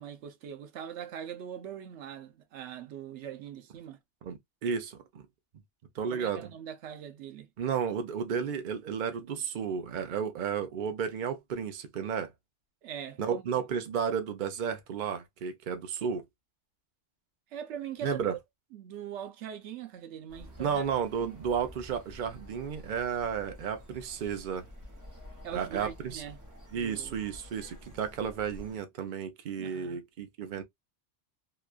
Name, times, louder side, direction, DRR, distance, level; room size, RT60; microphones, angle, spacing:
voice 1, 0.0-4.0 6.1-7.5 12.8-13.5 17.5-18.3 18.7-20.9 21.2-21.3 25.4-26.4 26.7-27.2 29.6-30.0, right 9 dB, 90° right, 0.9 m, -41 dB
voice 2, 4.2-5.3 5.9-6.5 7.6-12.3 13.2-16.2 18.0-18.3 20.6-24.7 25.5-26.2 26.7-30.6, right 7 dB, 50° right, 0.7 m, -33 dB
sound 1, 20.3-28.8, left 1 dB, 20° right, 0.8 m, -50 dB
2.9 x 2.3 x 2.3 m
omnidirectional pair, 1.1 m